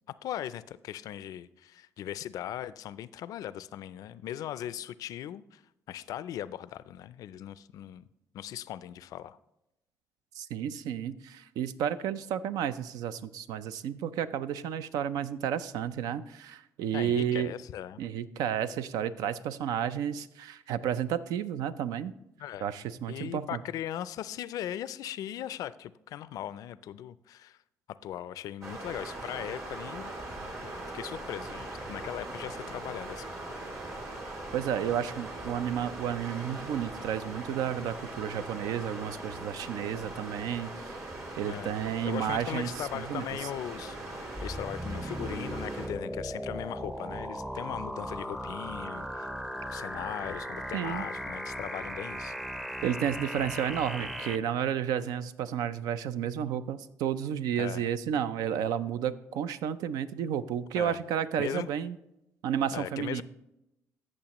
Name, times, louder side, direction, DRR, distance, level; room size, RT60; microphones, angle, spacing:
voice 1, 0.1-5.6 5.9-8.1 8.3-9.4 16.9-18.0 22.4-22.7 23.1-27.6 28.0-30.1 30.6-33.3 41.4-49.3 49.7-52.3 57.6-57.8 60.7-61.0 61.4-61.7 62.7-63.2, left 11 dB, 75° left, 17 dB, 0.3 m, -39 dB
voice 2, 10.4-17.5 18.0-22.1 22.6-23.6 34.5-41.0 41.4-42.7 42.9-43.2 50.7-51.1 52.8-62.0 62.4-63.2, right 9 dB, 90° right, 14 dB, 0.4 m, -32 dB
sound 1, 28.6-45.9, right 2 dB, 50° right, 2.9 m, -40 dB
sound 2, 44.4-54.4, equal, 5° right, 0.6 m, -37 dB
14.0 x 6.5 x 3.0 m, 0.87 s
cardioid pair, 90°, 6 cm